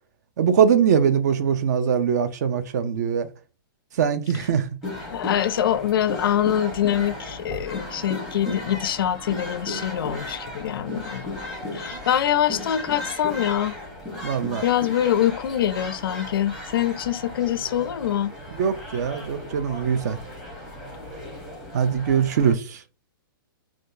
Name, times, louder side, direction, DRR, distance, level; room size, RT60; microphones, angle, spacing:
voice 1, 0.4-3.3 4.0-4.7 11.9-12.0 14.2-14.6 18.6-20.2 21.7-22.8, right 7 dB, 45° right, 0.4 m, -22 dB
sound 1, 4.8-22.5, left 1 dB, 5° right, 0.8 m, -36 dB
voice 2, 5.1-11.3 11.7-13.7 14.6-18.3, left 10 dB, 70° left, 0.4 m, -24 dB
3.6 x 2.3 x 2.5 m
hypercardioid pair, 165°, 12 cm